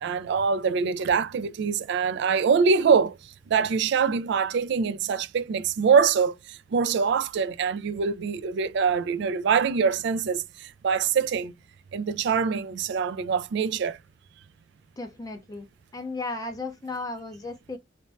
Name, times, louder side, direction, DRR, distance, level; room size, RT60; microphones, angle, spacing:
voice 1, 0.0-11.5 11.9-14.0, right 6 dB, 65° right, 0.3 m, -24 dB
voice 2, 15.0-15.7 15.9-17.8, left 3 dB, 20° left, 0.4 m, -35 dB
2.6 x 2.2 x 2.9 m
head